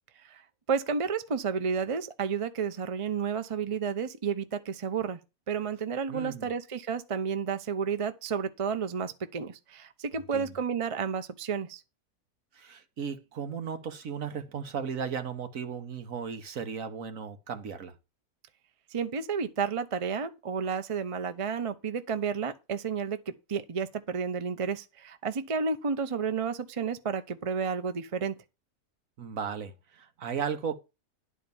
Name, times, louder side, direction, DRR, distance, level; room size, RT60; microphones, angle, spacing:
voice 1, 0.7-5.2 5.5-11.8 18.9-28.3, right 6 dB, 35° right, 0.6 m, -31 dB
voice 2, 6.1-6.5 10.3-10.5 12.5-17.9 29.2-30.8, right 7 dB, 65° right, 1.5 m, -35 dB
10.5 x 4.6 x 6.9 m
omnidirectional pair, 1.6 m